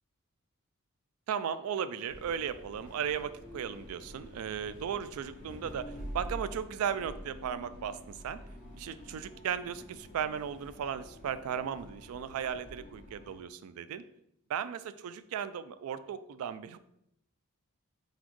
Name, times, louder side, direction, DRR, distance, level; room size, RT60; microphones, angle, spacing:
voice 1, 1.3-8.4 8.8-14.0 14.5-16.8, right 8 dB, 75° right, 13 dB, 0.3 m, -36 dB
sound 1, 2.1-13.4, equal, 40° left, 1.2 m, -47 dB
4.1 x 3.9 x 3.0 m, 0.76 s
head